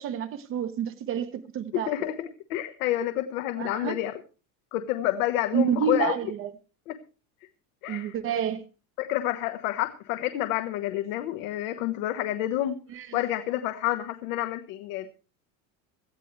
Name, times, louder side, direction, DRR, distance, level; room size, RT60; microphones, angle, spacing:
voice 1, 0.0-1.9 3.6-3.9 5.5-6.5 7.9-8.6 12.9-13.2, right 8 dB, 30° right, 10 dB, 0.7 m, -29 dB
voice 2, 1.7-4.1 4.7-6.2 6.9-7.0 7.8-8.2 9.0-12.8 13.1-15.1, left 13 dB, 75° left, 8 dB, 1.2 m, -29 dB
17.5 x 13.5 x 3.2 m, 0.35 s
cardioid pair, 170°, 44 cm